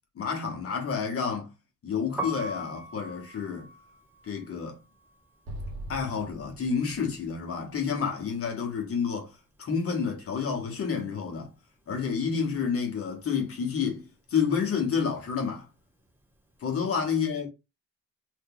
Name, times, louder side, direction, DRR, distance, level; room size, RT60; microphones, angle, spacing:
voice 1, 0.1-1.5 1.8-3.7 4.2-4.8 5.9-9.3 9.6-11.5 11.9-15.7 16.6-17.5, left 6 dB, 45° left, 1.2 m, -29 dB
Piano, 2.0-8.0 8.2-9.8 10.1-16.5, right 1 dB, 5° right, 0.5 m, -43 dB
Explosion, 5.5-8.7, right 1 dB, 55° right, 1.3 m, -42 dB
2.9 x 2.7 x 3.7 m
cardioid pair, 150°, 31 cm